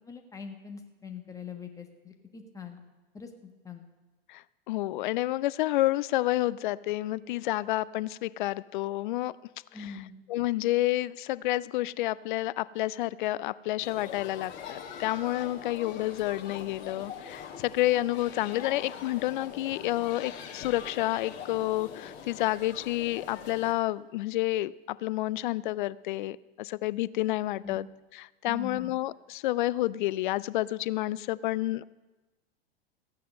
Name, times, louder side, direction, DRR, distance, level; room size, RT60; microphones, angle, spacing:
voice 1, 0.0-2.8 3.1-3.8 9.7-10.1 27.6-27.8 28.4-28.9, left 5 dB, 10° left, 5 dB, 1.4 m, -43 dB
voice 2, 4.3-9.4 9.8-9.9 10.3-27.9 28.1-31.8, left 16 dB, 50° left, 20 dB, 0.4 m, -29 dB
sound 1, 13.8-23.7, left 7 dB, 35° left, 2.2 m, -43 dB
15.0 x 9.3 x 5.4 m, 1.2 s
figure-of-eight pair, 90°, 31 cm